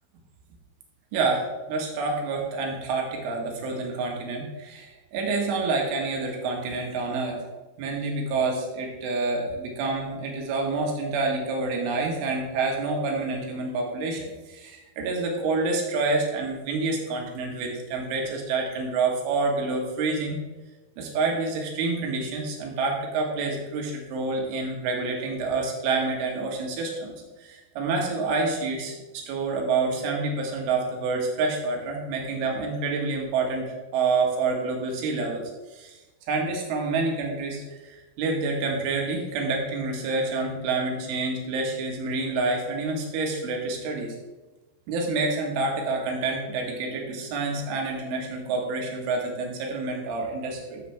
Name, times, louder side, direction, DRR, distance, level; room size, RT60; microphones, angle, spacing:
voice 1, 1.1-7.5 7.8-20.4 21.0-28.9 29.3-35.4 35.7-36.0 36.3-44.2 44.9-50.8, right 3 dB, 85° right, 0 dB, 4.1 m, -28 dB
13.5 x 7.5 x 3.5 m, 1.2 s
omnidirectional pair, 5.4 m